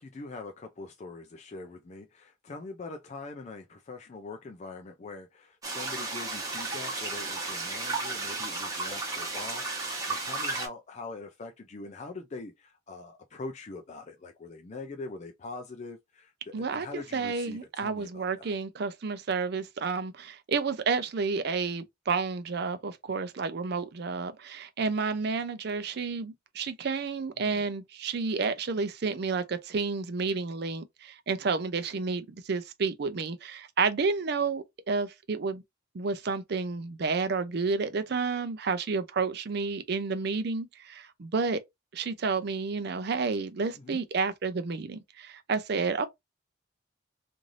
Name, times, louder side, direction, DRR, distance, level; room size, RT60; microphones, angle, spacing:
voice 1, 0.0-18.5 27.4-27.6 43.8-44.0, left 3 dB, 35° left, 0.4 m, -43 dB
sound 1, 5.6-10.7, right 3 dB, 15° right, 1.0 m, -33 dB
voice 2, 16.5-35.6 35.9-41.6 41.9-46.1, right 4 dB, 55° right, 0.5 m, -30 dB
3.2 x 2.6 x 2.5 m
head